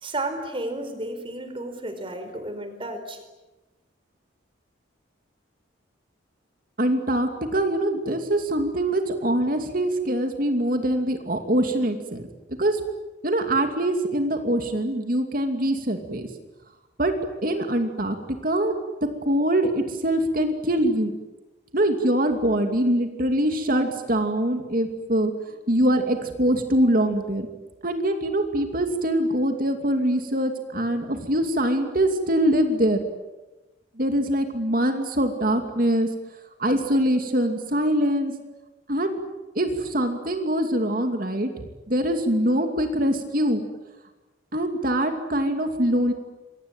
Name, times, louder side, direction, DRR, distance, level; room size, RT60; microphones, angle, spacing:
voice 1, 0.0-3.2, right 2 dB, 25° right, 8 dB, 4.6 m, -32 dB
voice 2, 6.8-12.2 12.6-12.8 13.2-16.3 17.0-17.1 17.4-18.2 18.4-18.8 19.3-21.2 21.7-25.3 25.7-27.5 27.8-33.0 34.0-36.1 36.6-38.3 38.9-39.2 39.6-41.5 41.9-43.6 44.5-46.1, right 1 dB, 45° right, 5 dB, 2.6 m, -23 dB
28.0 x 23.5 x 9.1 m, 1.1 s
head